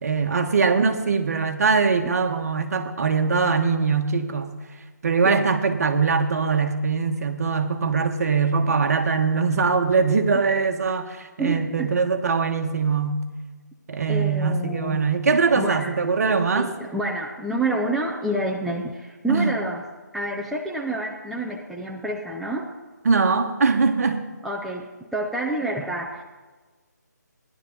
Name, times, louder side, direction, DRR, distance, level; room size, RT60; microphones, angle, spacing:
voice 1, 0.0-4.5 5.0-13.2 13.9-16.7 19.3-19.5 23.0-24.2, right 5 dB, 55° right, 6 dB, 1.5 m, -22 dB
voice 2, 11.4-11.9 14.1-15.0 15.6-15.9 16.5-19.8 20.1-22.7 24.4-26.2, right 1 dB, ahead, -2 dB, 0.5 m, -28 dB
17.5 x 11.5 x 4.0 m, 1.3 s
figure-of-eight pair, 160°, 10 cm